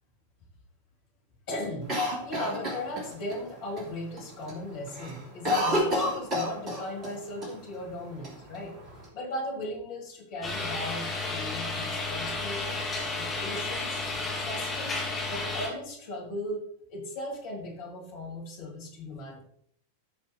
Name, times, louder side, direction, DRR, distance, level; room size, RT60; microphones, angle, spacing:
voice 1, 1.5-1.9 2.2-8.8 9.1-12.9 13.2-14.0 14.4-16.6 16.9-19.4, left 1 dB, 45° left, -1 dB, 3.0 m, -37 dB
Cough, 1.9-3.4 3.8-3.9 4.2-4.6 4.9-7.1 7.4-7.5 8.2-9.0, left 1 dB, 30° right, 3.0 m, -29 dB
sound 1, 10.4-15.7, left 3 dB, 20° left, 2.9 m, -32 dB
13.0 x 6.6 x 3.1 m, 0.66 s
figure-of-eight pair, 90°, 0 cm